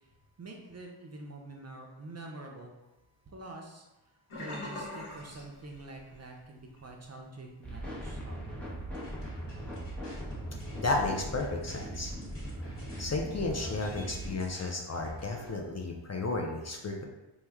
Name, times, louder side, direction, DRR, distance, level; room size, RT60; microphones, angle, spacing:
voice 1, 0.4-2.7 3.3-3.8 4.3-8.5, right 2 dB, 35° right, 1 dB, 0.5 m, -46 dB
Sink (filling or washing), 4.3-6.3 6.6-6.9 7.3-7.4, left 1 dB, 90° left, 1.2 m, -42 dB
sound 1, 7.6-14.4, right 1 dB, 5° left, 0.8 m, -39 dB
sound 2, 8.9-15.5, equal, 60° left, 1.1 m, -51 dB
voice 2, 10.7-12.1 13.0-17.0, left 2 dB, 35° left, 1 dB, 0.4 m, -33 dB
3.0 x 2.2 x 3.4 m, 1.0 s
cardioid pair, 55°, 49 cm